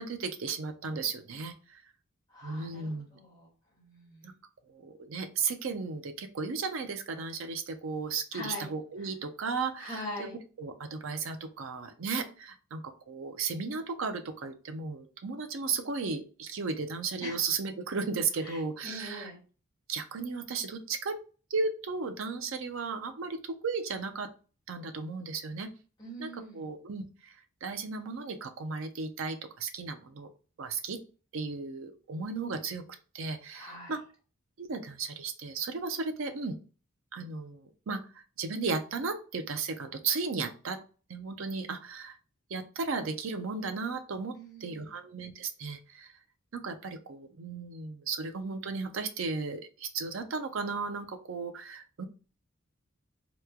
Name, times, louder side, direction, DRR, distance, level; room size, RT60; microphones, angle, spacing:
voice 1, 0.0-1.8 2.4-3.2 4.2-4.3 4.7-10.1 10.6-19.3 19.9-21.2 21.5-24.3 24.7-25.7 26.2-30.3 30.6-31.0 31.3-32.8 33.1-34.0 34.6-36.6 37.1-38.0 38.4-40.8 41.1-42.2 42.5-44.4 44.6-46.1 46.5-52.1, right 4 dB, 65° right, 7 dB, 0.5 m, -35 dB
voice 2, 2.3-3.5 3.8-4.3 8.3-8.7 9.0-9.1 9.8-10.4 17.2-17.4 18.4-19.4 26.0-26.7 33.5-34.0 44.3-45.0, left 1 dB, 20° left, -6 dB, 1.3 m, -43 dB
3.0 x 2.3 x 3.5 m, 0.36 s
head